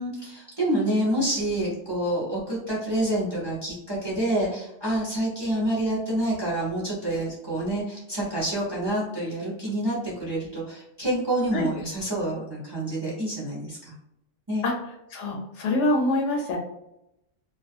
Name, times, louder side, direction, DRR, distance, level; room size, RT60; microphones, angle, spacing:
voice 1, 0.0-13.9 14.5-14.6, right 1 dB, 25° right, -7 dB, 0.6 m, -27 dB
voice 2, 15.1-16.6, left 2 dB, 75° left, 0 dB, 0.9 m, -25 dB
2.4 x 2.3 x 2.5 m, 0.84 s
omnidirectional pair, 1.3 m